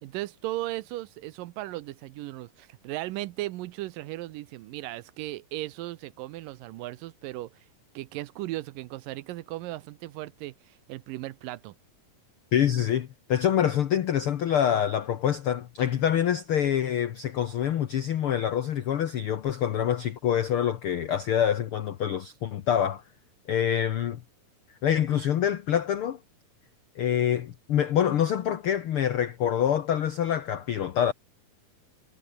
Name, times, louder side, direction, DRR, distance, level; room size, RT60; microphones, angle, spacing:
voice 1, 0.0-7.5 8.0-11.8, right 17 dB, 80° right, 2.4 m, -36 dB
voice 2, 12.5-23.0 23.5-24.2 24.8-26.2 26.9-31.1, left 9 dB, 90° left, 1.2 m, -26 dB
omnidirectional pair, 4.0 m